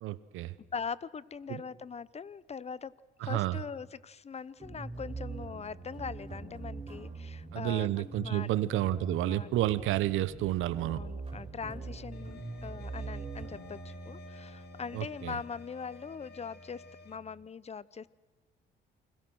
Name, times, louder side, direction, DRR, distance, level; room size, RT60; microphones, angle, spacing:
voice 1, 0.0-0.5 1.5-1.6 3.2-3.6 7.5-11.1 14.9-15.3, right 14 dB, 90° right, 17 dB, 0.9 m, -30 dB
voice 2, 0.7-2.9 3.2-7.9 8.2-8.5 9.3-9.5 10.9-18.1, left 6 dB, 30° left, 20 dB, 0.8 m, -41 dB
sound 1, 4.6-17.4, right 3 dB, 25° right, 7.5 m, -43 dB
sound 2, 12.1-17.2, left 4 dB, 55° left, 2.0 m, -54 dB
29.0 x 21.5 x 6.3 m, 1.2 s
cardioid pair, 90°, 20 cm